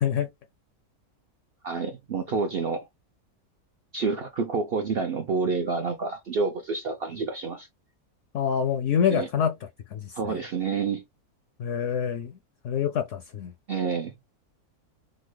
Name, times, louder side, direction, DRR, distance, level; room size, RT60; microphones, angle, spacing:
voice 1, 1.6-2.9 3.9-7.7 9.1-9.3 10.1-11.0 13.7-14.1, right 4 dB, 65° right, 0.5 m, -28 dB
voice 2, 8.3-9.5 9.9-10.4 11.6-12.3 12.6-13.5, left 8 dB, 65° left, 0.8 m, -26 dB
3.8 x 2.0 x 3.1 m
omnidirectional pair, 1.6 m